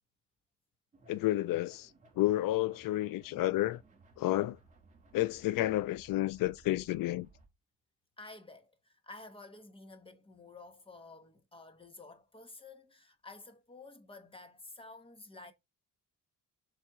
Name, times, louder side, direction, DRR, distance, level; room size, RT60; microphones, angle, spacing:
sound 1, 0.9-7.5, right 3 dB, 20° right, 1.7 m, -61 dB
voice 1, 1.1-3.8 4.2-4.6 5.1-7.3, left 15 dB, 85° left, 0.5 m, -31 dB
voice 2, 8.2-15.5, left 3 dB, 15° left, 1.1 m, -51 dB
7.4 x 3.4 x 4.7 m
cardioid pair, 170°, 33 cm